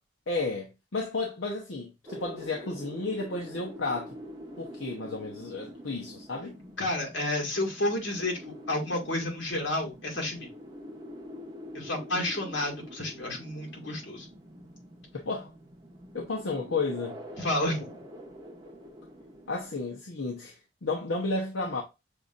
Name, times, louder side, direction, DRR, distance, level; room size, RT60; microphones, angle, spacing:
voice 1, 0.3-4.2 4.6-6.6 15.1-15.5 16.1-17.2 19.5-21.8, left 3 dB, 85° left, 1.0 m, -32 dB
sound 1, 2.1-19.8, equal, 20° right, 0.9 m, -46 dB
voice 2, 6.8-8.4 8.7-10.5 11.7-14.3 17.4-18.0, left 1 dB, 70° left, 2.0 m, -30 dB
6.7 x 2.7 x 2.5 m
head